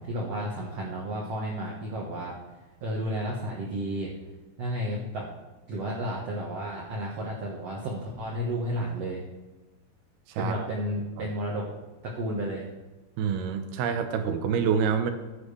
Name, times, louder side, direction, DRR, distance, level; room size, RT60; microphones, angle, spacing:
voice 1, 0.0-2.3 2.8-4.1 4.6-5.3 5.7-9.2 10.4-11.7 12.0-12.7, equal, 60° right, -3 dB, 1.8 m, -32 dB
voice 2, 10.3-10.7 11.2-11.3 13.2-15.1, right 7 dB, 80° right, 7 dB, 2.8 m, -27 dB
15.0 x 9.9 x 3.3 m, 1.1 s
omnidirectional pair, 4.7 m